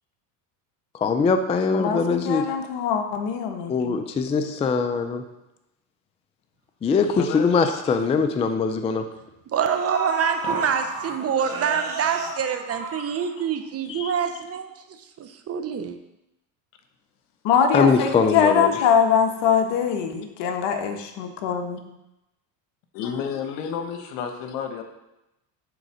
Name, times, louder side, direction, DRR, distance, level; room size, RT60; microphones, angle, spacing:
voice 1, 0.9-2.5 3.7-5.3 6.8-9.1 13.9-14.1 17.7-18.7, left 5 dB, 15° left, 7 dB, 0.3 m, -22 dB
voice 2, 1.7-4.0 17.4-21.8, left 7 dB, 60° left, 5 dB, 1.3 m, -22 dB
voice 3, 7.1-7.6 10.4-10.6 22.9-24.8, left 6 dB, 85° left, 6 dB, 1.3 m, -31 dB
sound 1, 9.2-9.3 9.7-13.6 14.0-14.1, right 4 dB, 50° right, 2.3 m, -31 dB
voice 4, 9.5-16.0, right 7 dB, 30° right, 8 dB, 0.7 m, -26 dB
9.2 x 3.7 x 6.3 m, 0.92 s
supercardioid pair, 110°, 47 cm